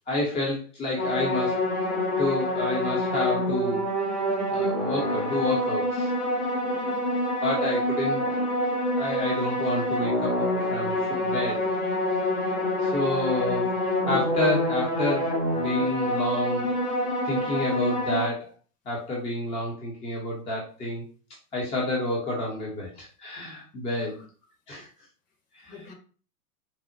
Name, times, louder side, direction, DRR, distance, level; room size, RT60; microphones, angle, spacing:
voice 1, 0.1-1.6 2.2-3.9 4.5-6.1 7.4-8.2 9.0-11.6 12.8-13.8 14.0-16.7 17.2-18.5 18.9-21.0 21.5-24.2 24.7-24.9 25.6-25.7, left 2 dB, 15° left, -4 dB, 0.6 m, -29 dB
sound 1, 1.0-18.3, left 1 dB, 70° left, 1.6 m, -26 dB
voice 2, 6.6-7.0 13.0-13.3 24.0-24.3 25.6-25.9, left 4 dB, 40° left, 3 dB, 1.1 m, -46 dB
4.0 x 2.1 x 2.5 m, 0.39 s
hypercardioid pair, 110°, 46 cm